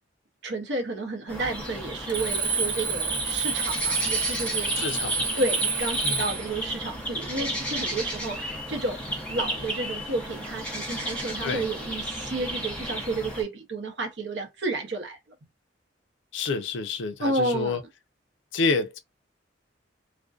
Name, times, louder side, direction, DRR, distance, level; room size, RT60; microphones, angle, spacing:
voice 1, 0.4-4.8 5.3-9.0 9.3-15.2 17.2-17.8, right 2 dB, 65° right, 0.7 m, -31 dB
sound 1, 1.3-13.4, equal, 5° left, 0.6 m, -33 dB
Alarm, 2.1-6.5, right 5 dB, 25° right, 0.9 m, -29 dB
voice 2, 4.8-5.3 6.0-6.2 11.4-11.7 16.3-17.8 18.5-19.0, left 4 dB, 80° left, 0.5 m, -28 dB
2.5 x 2.1 x 2.3 m
head